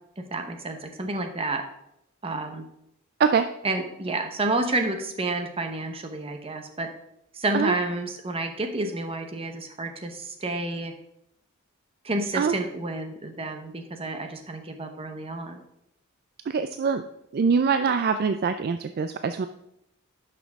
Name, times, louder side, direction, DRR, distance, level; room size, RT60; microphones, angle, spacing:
voice 1, 0.2-1.6 2.2-2.7 3.6-6.9 7.3-10.9 12.0-15.6, right 2 dB, 25° right, 5 dB, 0.9 m, -30 dB
voice 2, 16.5-17.0 17.3-19.5, right 5 dB, 45° right, 9 dB, 0.3 m, -23 dB
11.5 x 6.0 x 3.5 m, 0.80 s
head